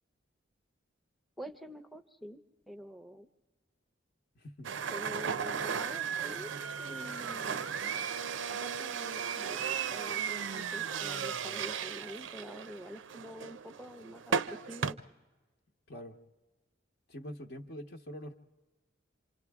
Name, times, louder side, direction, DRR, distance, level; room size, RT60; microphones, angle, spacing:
voice 1, 1.4-2.4 2.7-3.3 4.9-6.5 6.8-7.7 8.5-14.4 14.7-15.0, equal, ahead, 9 dB, 0.6 m, -46 dB
voice 2, 4.3-4.7 15.9-16.2 17.1-18.3, equal, 55° left, 3 dB, 1.0 m, -44 dB
sound 1, 4.6-14.9, right 7 dB, 70° right, 0.5 m, -36 dB
27.5 x 26.5 x 3.5 m, 1.2 s
head